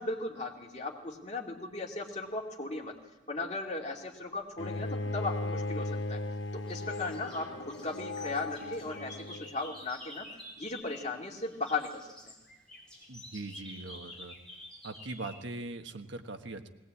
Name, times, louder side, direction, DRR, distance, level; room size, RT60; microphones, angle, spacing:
voice 1, 0.0-2.9 3.3-6.2 6.5-10.3 10.6-12.3, left 3 dB, 35° left, 0 dB, 2.7 m, -37 dB
Bowed string instrument, 4.6-9.6, left 2 dB, 85° left, 1.0 m, -37 dB
birds chirping in a forest, 5.5-6.3 6.7-11.2 11.4-15.4, left 1 dB, 5° left, 4.1 m, -50 dB
voice 2, 13.1-14.3 14.8-16.7, right 2 dB, 80° right, 7 dB, 1.4 m, -41 dB
20.0 x 18.5 x 8.4 m, 1.1 s
head